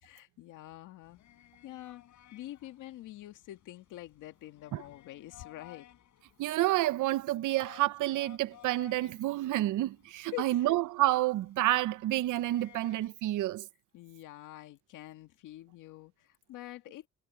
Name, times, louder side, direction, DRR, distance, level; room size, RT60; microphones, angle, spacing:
voice 1, 0.0-1.2 1.6-2.0 2.3-5.9 10.3-10.7 13.9-17.1, left 16 dB, 90° left, 1.9 m, -46 dB
sound 1, 1.0-13.1, left 12 dB, 75° left, 4.3 m, -58 dB
voice 2, 6.4-13.7, right 16 dB, 80° right, 0.8 m, -29 dB
cardioid pair, 90°, 30 cm